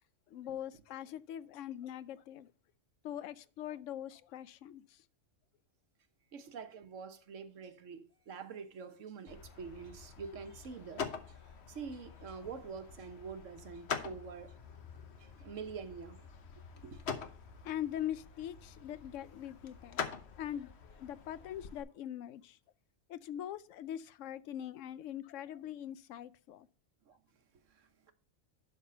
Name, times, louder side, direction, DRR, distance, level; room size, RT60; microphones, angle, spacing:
voice 1, 0.3-2.5 3.0-5.0 17.6-20.0 20.4-22.6 23.1-26.7, left 11 dB, 85° left, 0.9 m, -42 dB
voice 2, 6.3-14.6 15.2-16.3 16.8-17.0 27.0-28.1, right 5 dB, 80° right, 1.3 m, -46 dB
sound 1, 9.3-21.8, left 6 dB, 60° left, 1.2 m, -45 dB
11.5 x 4.2 x 5.6 m
omnidirectional pair, 1.3 m